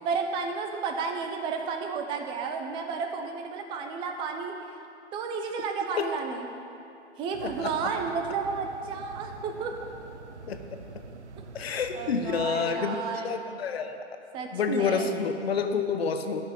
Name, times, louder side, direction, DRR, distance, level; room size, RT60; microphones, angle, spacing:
voice 1, 0.0-4.6 5.1-6.5 7.2-9.7 11.9-13.4 14.3-15.1, right 5 dB, 15° right, 4 dB, 0.7 m, -32 dB
sound 1, 7.3-12.5, right 4 dB, 75° right, 0.9 m, -45 dB
voice 2, 7.4-7.9 10.5-10.6 11.5-14.0 14.5-16.4, left 5 dB, 60° left, 7 dB, 1.0 m, -29 dB
12.0 x 6.5 x 8.7 m, 2.7 s
hypercardioid pair, 140°, 35 cm